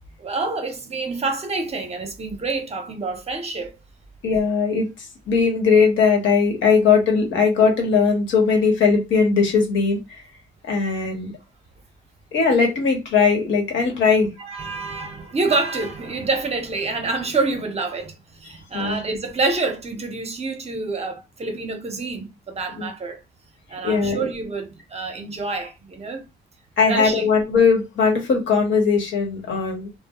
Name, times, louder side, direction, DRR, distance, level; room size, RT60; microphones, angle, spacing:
voice 1, 0.2-3.8 14.4-23.2 23.7-26.2 26.8-27.3, right 3 dB, 30° right, 0.7 m, -27 dB
voice 2, 4.2-4.9 5.3-10.2 10.7-11.3 12.3-14.3 18.7-19.0 22.8-22.9 23.8-24.2 26.8-29.9, left 5 dB, 75° left, 1.0 m, -19 dB
2.1 x 2.0 x 2.9 m
cardioid pair, 90°, 20 cm